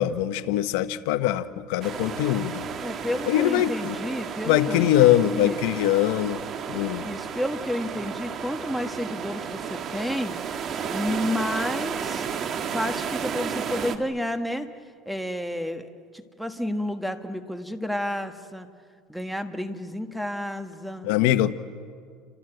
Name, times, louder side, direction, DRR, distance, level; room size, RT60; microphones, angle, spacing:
voice 1, 0.0-2.6 3.3-4.0 4.5-6.4 6.7-7.1 21.0-21.5, left 13 dB, 75° left, 11 dB, 1.1 m, -22 dB
sound 1, 1.8-14.0, right 7 dB, 40° right, 1.7 m, -33 dB
voice 2, 2.8-5.6 7.0-10.4 10.9-12.3 12.7-14.7 15.0-18.7 19.1-21.1, left 1 dB, ahead, 8 dB, 1.4 m, -31 dB
29.0 x 25.5 x 7.9 m, 2.1 s
cardioid pair, 135°, 0 cm